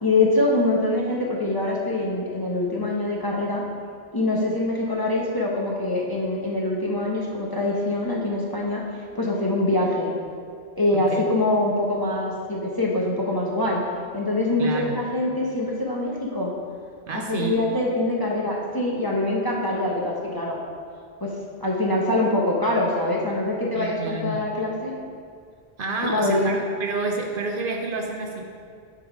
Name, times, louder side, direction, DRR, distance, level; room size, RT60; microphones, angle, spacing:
voice 1, 0.0-3.6 4.1-8.8 9.1-10.1 10.8-13.8 14.1-16.5 17.1-20.6 21.2-21.3 21.6-25.0 26.0-26.6, left 2 dB, 25° left, -3 dB, 0.7 m, -24 dB
voice 2, 14.6-15.0 17.1-17.6 23.7-24.4 25.8-28.4, right 3 dB, 60° right, 1 dB, 0.8 m, -29 dB
8.3 x 3.9 x 5.0 m, 2.2 s
omnidirectional pair, 1.1 m